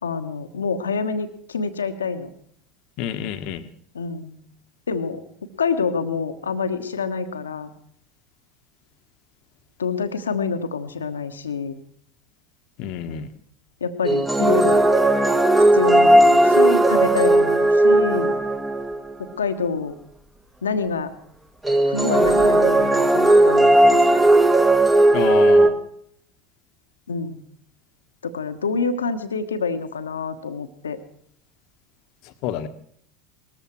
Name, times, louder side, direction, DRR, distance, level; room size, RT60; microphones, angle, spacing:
voice 1, 0.0-2.3 3.9-4.4 4.9-5.2 5.6-7.7 9.8-11.8 13.8-14.9 15.7-18.4 19.2-20.0 20.6-21.1 21.8-24.2 27.1-27.4 28.2-31.0, left 5 dB, 75° left, 10 dB, 1.3 m, -27 dB
voice 2, 3.0-3.7 12.8-13.3 25.1-25.8 32.4-32.7, left 10 dB, 50° left, 11 dB, 1.3 m, -28 dB
sound 1, 14.0-19.1 21.6-25.7, right 1 dB, 10° right, 1.5 m, -16 dB
20.0 x 14.0 x 4.6 m, 0.64 s
figure-of-eight pair, 75°, 0 cm